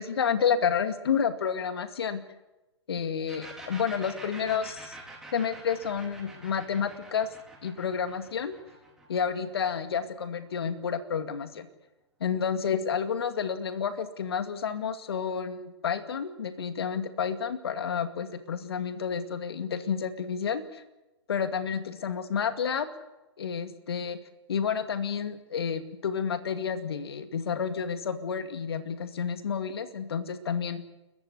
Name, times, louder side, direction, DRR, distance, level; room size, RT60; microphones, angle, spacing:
voice 1, 0.0-2.2 2.9-5.0 5.3-7.3 7.6-8.6 9.1-11.7 12.2-20.8 21.3-22.9 23.4-24.2 24.5-30.8, left 7 dB, 60° left, 9 dB, 2.3 m, -30 dB
sound 1, 3.3-10.8, right 2 dB, 5° right, 5.3 m, -47 dB
29.5 x 14.5 x 9.6 m, 1.0 s
figure-of-eight pair, 115°, 15 cm